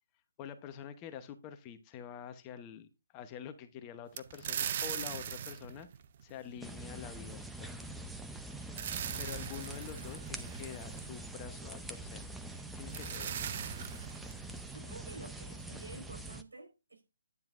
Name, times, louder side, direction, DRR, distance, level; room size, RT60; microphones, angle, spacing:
voice 1, 0.4-5.9 6.2-7.9 9.2-12.2 12.7-13.4, left 8 dB, 25° left, 0.9 m, -47 dB
sound 1, 4.2-6.8 8.4-11.4 12.6-12.7 12.9-14.7, right 9 dB, 45° right, 0.6 m, -40 dB
sound 2, 6.6-16.4, right 1 dB, 5° right, 0.6 m, -44 dB
voice 2, 14.6-17.1, right 3 dB, 85° right, 4.4 m, -51 dB
9.8 x 6.9 x 2.5 m
hypercardioid pair, 150°, 0 cm